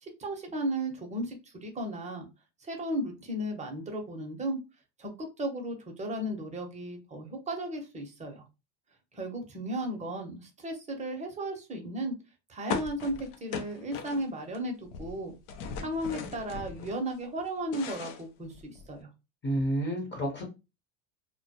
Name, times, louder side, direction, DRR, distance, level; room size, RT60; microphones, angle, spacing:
voice 1, 0.0-2.3 2.6-4.6 5.0-8.4 9.1-12.1 12.5-15.3 15.8-19.1, right 1 dB, 15° right, 2 dB, 0.6 m, -35 dB
sound 1, 12.7-14.6 14.8-17.0 17.4-18.9, left 6 dB, 70° left, 0.6 m, -38 dB
voice 2, 19.4-20.4, right 1 dB, 25° left, 1 dB, 0.7 m, -30 dB
2.2 x 2.0 x 2.7 m, 0.27 s
supercardioid pair, 105°, 47 cm